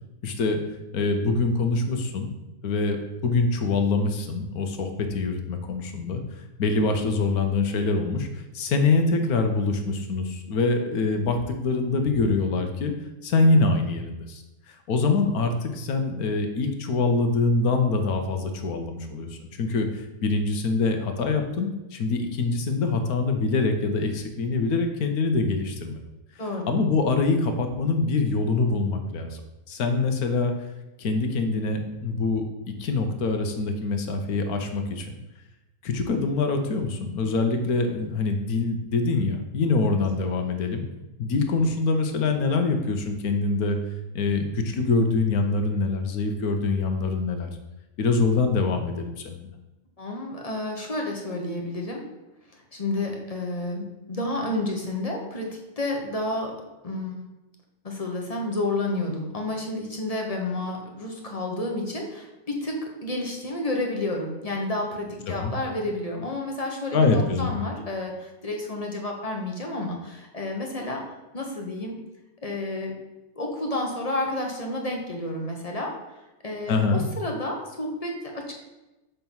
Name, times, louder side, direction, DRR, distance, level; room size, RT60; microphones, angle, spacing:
voice 1, 0.2-0.6 0.9-2.3 2.6-11.4 11.6-12.9 13.2-26.0 26.7-29.4 29.7-30.5 31.0-32.4 32.8-35.2 35.8-40.8 41.2-43.8 44.1-47.5 48.0-49.5 65.3-65.5 66.9-67.5 76.7-77.0, left 3 dB, 75° left, 5 dB, 1.4 m, -24 dB
voice 2, 26.4-26.7 50.0-52.0 52.5-56.6 56.8-57.3 57.8-71.0 71.3-72.0 72.4-73.0 73.3-76.0 76.4-78.5, left 2 dB, 25° left, 0 dB, 1.2 m, -30 dB
6.8 x 4.5 x 5.4 m, 1.0 s
omnidirectional pair, 1.6 m